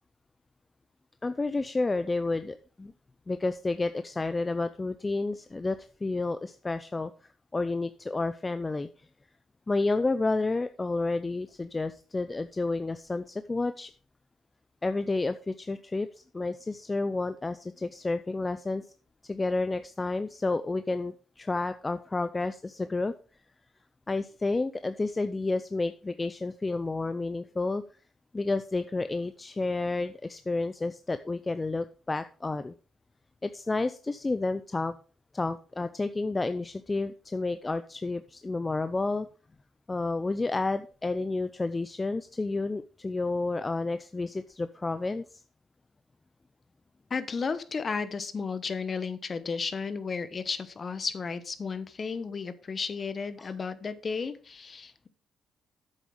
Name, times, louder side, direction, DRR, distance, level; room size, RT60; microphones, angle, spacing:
voice 1, 1.2-2.9 3.3-7.1 7.5-8.9 9.7-13.9 14.8-16.1 16.3-18.9 19.3-23.1 24.1-27.8 28.3-32.7 33.4-34.9 35.3-39.3 39.9-45.4 53.4-53.5, left 3 dB, 20° left, 11 dB, 0.5 m, -30 dB
voice 2, 47.1-55.1, left 5 dB, 40° left, 13 dB, 1.1 m, -33 dB
8.3 x 6.9 x 4.9 m, 0.38 s
cardioid pair, 90°, 0 cm